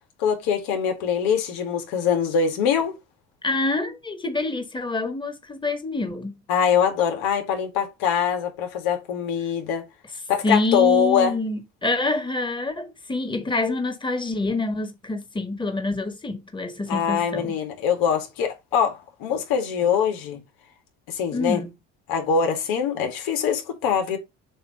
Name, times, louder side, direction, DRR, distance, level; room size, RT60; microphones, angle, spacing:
voice 1, 0.2-2.9 6.5-9.8 10.3-11.4 16.9-20.4 21.1-21.6 22.1-24.2, left 7 dB, 80° left, 2.2 m, -23 dB
voice 2, 3.4-6.4 10.4-17.6 21.3-21.7, left 2 dB, 15° left, 1.7 m, -26 dB
7.8 x 3.0 x 5.2 m
supercardioid pair, 95°, 35 cm